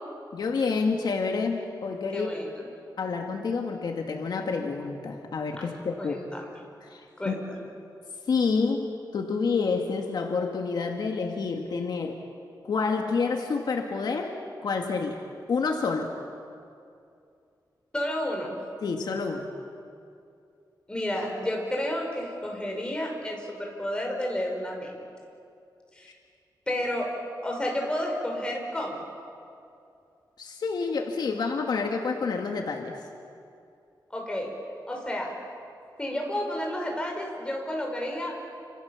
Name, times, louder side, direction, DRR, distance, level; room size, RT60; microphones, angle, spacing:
voice 1, 0.3-2.3 3.0-6.2 6.8-7.4 8.3-12.2 12.6-15.2 15.5-16.2 18.8-19.5 30.4-33.1, left 4 dB, 70° left, 2 dB, 2.1 m, -28 dB
voice 2, 2.1-2.7 5.6-5.7 6.0-6.4 7.2-7.4 17.9-18.6 20.9-24.9 25.9-26.1 26.7-27.1 27.4-29.0 34.1-34.5 34.9-35.3 36.0-38.4, left 1 dB, 15° left, 0 dB, 5.4 m, -31 dB
30.0 x 27.0 x 7.3 m, 2.5 s
wide cardioid pair, 160°, 8 cm